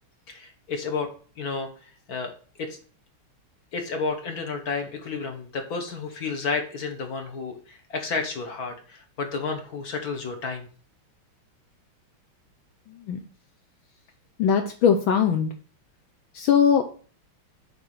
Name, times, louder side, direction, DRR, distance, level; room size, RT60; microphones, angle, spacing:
voice 1, 0.3-1.1 1.4-2.3 2.6-2.8 3.7-10.7, left 4 dB, 50° left, 4 dB, 1.6 m, -31 dB
voice 2, 14.4-15.5 16.3-16.8, left 7 dB, 70° left, 5 dB, 1.4 m, -20 dB
7.9 x 3.5 x 6.4 m, 0.41 s
omnidirectional pair, 2.4 m